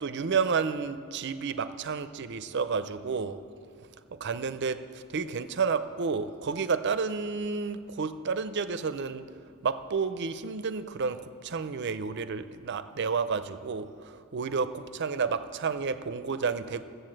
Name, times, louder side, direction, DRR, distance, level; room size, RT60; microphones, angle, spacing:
voice 1, 0.0-3.4 3.7-9.3 9.6-16.8, right 5 dB, 55° right, 0.5 m, -31 dB
14.0 x 8.0 x 7.7 m
head